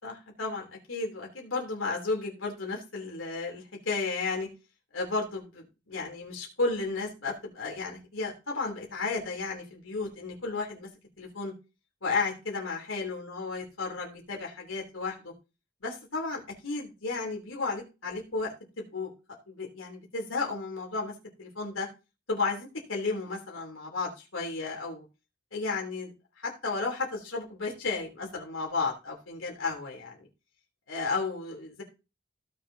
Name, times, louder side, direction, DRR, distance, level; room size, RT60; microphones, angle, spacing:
voice 1, 0.0-4.5 4.9-10.9 11.2-11.5 12.0-15.3 15.8-19.1 19.5-21.1 21.4-21.9 22.3-25.0 25.5-26.1 26.4-30.2 30.9-31.8, left 3 dB, 90° left, -1 dB, 3.3 m, -33 dB
16.5 x 7.1 x 2.8 m, 0.30 s
head